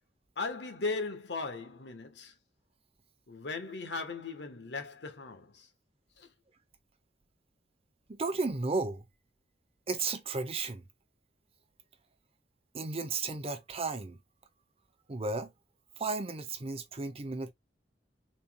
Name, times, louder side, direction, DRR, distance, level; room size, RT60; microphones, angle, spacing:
voice 1, 0.4-2.3 3.3-5.7 6.2-6.3, left 3 dB, 80° left, 1.1 m, -37 dB
voice 2, 8.1-9.0 9.9-10.8 12.7-14.2 15.1-15.5 16.0-17.5, right 3 dB, 35° right, 0.7 m, -34 dB
4.1 x 3.8 x 2.2 m
head